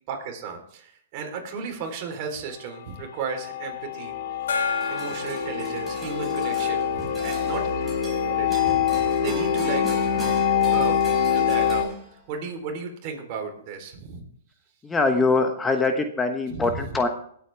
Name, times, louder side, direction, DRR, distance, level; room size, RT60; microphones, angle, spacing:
voice 1, 0.1-4.1 4.9-7.6 8.2-9.8 10.7-10.9 11.3-11.8 12.3-14.2 16.5-17.0, right 5 dB, 45° right, 3 dB, 3.7 m, -34 dB
sound 1, 3.3-11.8, left 8 dB, 55° left, 2.6 m, -25 dB
Gong, 4.5-7.7, left 5 dB, 80° left, 3.9 m, -32 dB
sound 2, 4.7-12.4, right 1 dB, 10° right, 5.2 m, -41 dB
voice 2, 14.8-17.1, left 3 dB, 15° left, 5 dB, 1.2 m, -23 dB
18.5 x 8.3 x 3.5 m, 0.62 s
hypercardioid pair, 130°, 0 cm